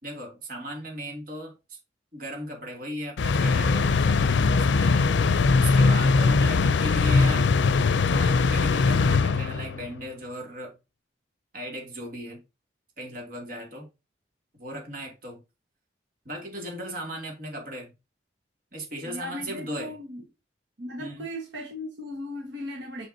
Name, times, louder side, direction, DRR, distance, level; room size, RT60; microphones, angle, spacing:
voice 1, 0.0-1.8 2.1-7.5 8.1-10.7 11.5-12.4 13.0-13.9 14.6-15.4 16.2-17.9 18.7-19.9 21.0-21.3, equal, 50° right, 2.6 m, -37 dB
sound 1, 3.2-9.9, left 4 dB, 80° left, 0.5 m, -21 dB
voice 2, 19.0-20.2 20.8-23.1, left 1 dB, 75° right, 1.4 m, -37 dB
6.3 x 5.7 x 2.7 m
head